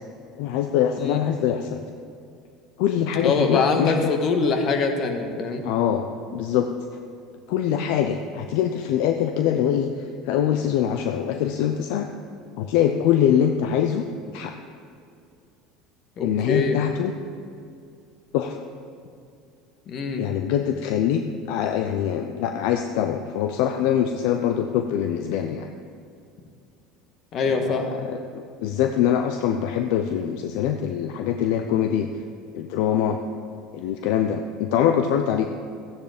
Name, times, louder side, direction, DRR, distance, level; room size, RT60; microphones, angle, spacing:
voice 1, 0.4-1.8 2.8-4.1 5.6-6.1 6.3-6.7 7.5-12.1 12.6-14.0 14.3-14.5 16.2-17.1 18.3-18.6 20.2-21.2 21.5-25.7 27.5-32.1 32.5-33.2 33.7-35.5, left 9 dB, 70° left, 6 dB, 0.6 m, -23 dB
voice 2, 3.2-5.6 16.2-16.8 19.9-20.2 27.3-27.9, left 4 dB, 50° left, 5 dB, 1.7 m, -23 dB
14.0 x 10.0 x 5.1 m, 2.4 s
hypercardioid pair, 85°, 0 cm